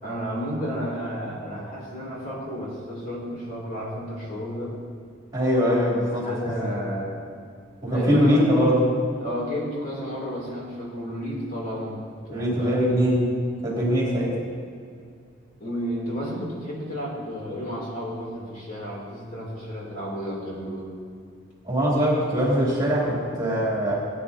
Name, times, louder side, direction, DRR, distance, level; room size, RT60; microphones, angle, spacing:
voice 1, 0.0-4.8 6.1-7.2 7.8-8.6 9.2-12.8 15.6-20.9, equal, 40° left, -5 dB, 2.8 m, -32 dB
voice 2, 5.3-6.3 7.8-8.8 12.3-13.3 13.6-14.4 21.7-24.0, equal, 20° right, -6 dB, 3.0 m, -22 dB
18.5 x 9.0 x 2.8 m, 2.3 s
head